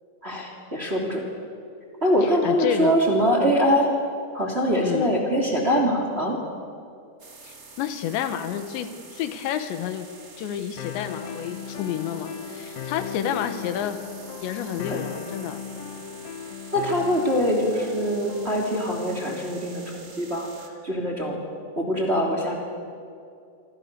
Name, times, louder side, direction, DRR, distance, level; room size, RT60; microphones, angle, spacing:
voice 1, 0.2-1.2 2.0-3.9 4.3-6.4 14.9-15.1 16.7-21.4 21.8-22.5, equal, 15° right, 0 dB, 2.7 m, -23 dB
voice 2, 2.4-3.0 4.8-5.1 7.4-10.1 10.4-14.0 14.4-15.6, left 10 dB, 85° left, 9 dB, 3.5 m, -30 dB
sound 1, 7.2-20.7, right 4 dB, 35° right, 1.6 m, -47 dB
sound 2, 10.8-18.8, left 7 dB, 65° left, 2.6 m, -37 dB
26.5 x 26.0 x 6.8 m, 2.4 s
omnidirectional pair, 5.0 m